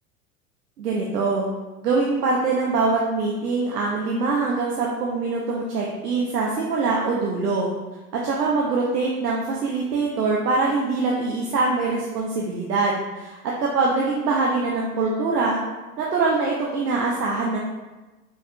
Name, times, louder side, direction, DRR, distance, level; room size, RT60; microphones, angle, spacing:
voice 1, 0.8-1.5 1.8-7.7 8.1-15.6 16.0-17.6, right 3 dB, 85° right, -3 dB, 0.7 m, -23 dB
5.2 x 3.5 x 2.2 m, 1.2 s
hypercardioid pair, 90°, 47 cm